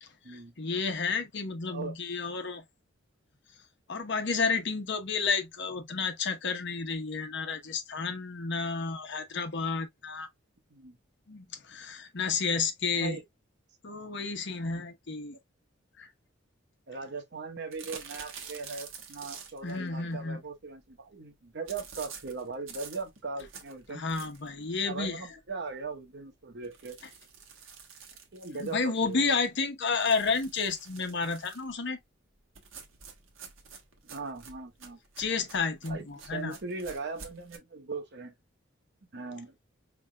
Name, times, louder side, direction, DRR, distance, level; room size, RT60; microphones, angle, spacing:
voice 1, 0.0-2.6 3.9-10.3 11.3-13.2 13.8-15.4 16.0-16.1 19.6-20.4 23.9-25.3 28.6-32.0 35.2-36.6, left 4 dB, 65° left, 1.0 m, -31 dB
voice 2, 12.9-13.2 16.9-24.0 24.7-27.0 28.3-29.2 34.0-35.0 35.9-38.3 39.1-39.6, right 4 dB, 60° right, 1.0 m, -39 dB
sound 1, 17.7-19.8 21.7-24.6 25.0-25.1 25.5-25.6 25.9-26.0 26.6-29.1 29.9-31.7 32.5-37.6, right 6 dB, 75° right, 1.2 m, -48 dB
5.0 x 3.4 x 2.2 m
head